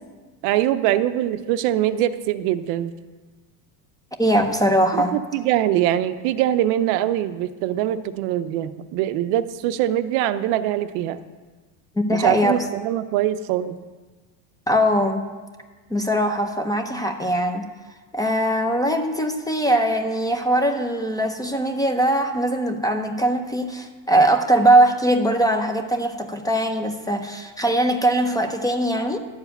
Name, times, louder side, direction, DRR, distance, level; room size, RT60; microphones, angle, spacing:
voice 1, 0.4-2.9 4.9-11.2 12.1-13.8, right 12 dB, 55° right, 12 dB, 0.6 m, -23 dB
voice 2, 4.2-5.2 12.0-12.7 14.7-15.2 15.9-17.7 18.1-29.2, right 1 dB, 10° left, 5 dB, 0.5 m, -21 dB
11.5 x 4.9 x 7.9 m, 1.3 s
supercardioid pair, 130°, 48 cm